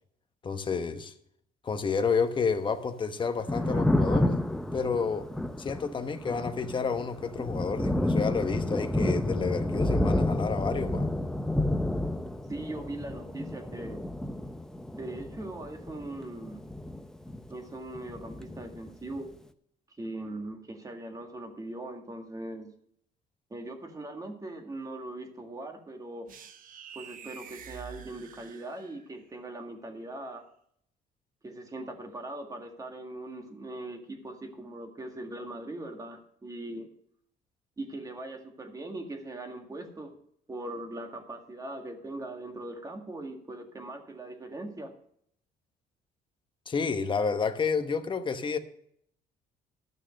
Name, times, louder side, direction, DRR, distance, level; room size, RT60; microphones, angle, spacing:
voice 1, 0.4-1.1 1.6-4.4 4.7-5.3 5.6-11.1 46.7-48.6, left 5 dB, 30° left, 1.1 m, -30 dB
Thunder, 3.3-17.7 18.0-19.2, left 1 dB, 5° left, 0.7 m, -30 dB
voice 2, 12.5-14.0 14.9-16.6 17.5-19.3 20.0-22.7 23.5-26.3 27.0-30.5 31.4-36.9 37.8-40.1 40.5-44.9, right 2 dB, 20° right, 2.0 m, -40 dB
sound 1, 26.3-29.2, right 7 dB, 55° right, 0.9 m, -47 dB
12.5 x 6.4 x 6.4 m
cardioid pair, 110°, 17 cm